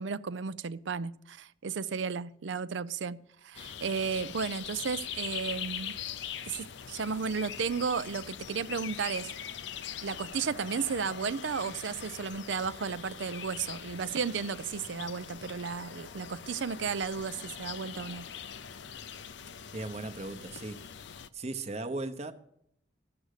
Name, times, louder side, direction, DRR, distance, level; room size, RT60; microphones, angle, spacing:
voice 1, 0.0-3.2 3.4-5.9 6.5-9.3 10.0-18.3, right 5 dB, 75° right, 0.5 m, -34 dB
sound 1, 3.5-21.3, left 8 dB, 70° left, 0.5 m, -42 dB
voice 2, 19.7-20.8 21.3-22.3, right 2 dB, 35° right, 0.9 m, -37 dB
14.5 x 6.4 x 6.5 m
head